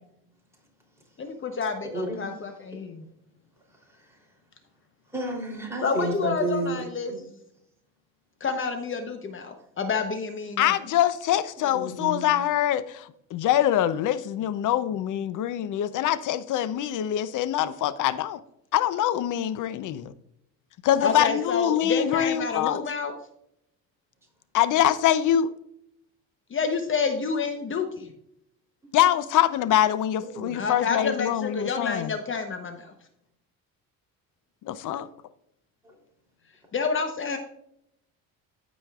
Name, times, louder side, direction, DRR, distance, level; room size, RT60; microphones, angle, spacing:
voice 1, 1.2-1.9 2.2-3.0 5.8-7.1 8.4-10.7 21.0-23.1 26.5-28.1 30.5-32.6 36.7-37.4, left 5 dB, 35° left, 0.9 m, -28 dB
voice 2, 1.8-2.5 3.7-4.3 5.1-7.2 11.6-12.3 30.3-30.7 35.8-35.9, right 1 dB, 5° right, 3.2 m, -32 dB
voice 3, 10.6-18.4 18.7-20.1 20.8-22.8 24.5-25.5 28.9-32.1 34.6-35.1, left 11 dB, 60° left, 0.7 m, -24 dB
14.5 x 5.1 x 2.4 m
cardioid pair, 110°, 36 cm